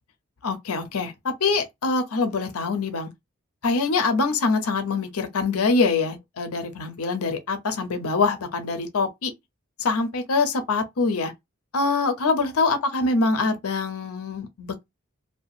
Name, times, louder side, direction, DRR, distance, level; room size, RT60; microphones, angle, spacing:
voice 1, 0.4-3.1 3.6-9.3 9.8-11.3 11.7-14.8, left 3 dB, 85° left, 0.7 m, -24 dB
2.7 x 2.3 x 2.4 m
head